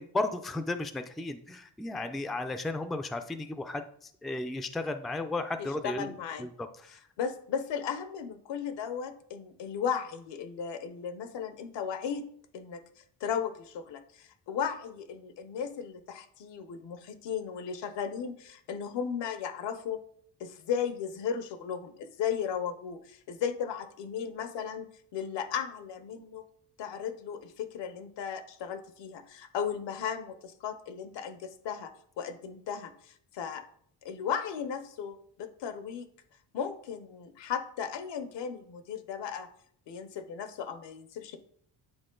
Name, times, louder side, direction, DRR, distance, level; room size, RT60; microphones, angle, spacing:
voice 1, 0.0-7.0, left 2 dB, ahead, 8 dB, 0.3 m, -34 dB
voice 2, 5.8-6.5 7.2-12.2 12.5-12.8 13.2-20.0 20.4-24.9 25.1-26.4 26.8-33.7 34.0-36.1 36.5-39.5 39.9-41.4, left 7 dB, 75° left, 11 dB, 0.8 m, -35 dB
9.0 x 3.7 x 3.8 m, 0.63 s
cardioid pair, 95°, 43 cm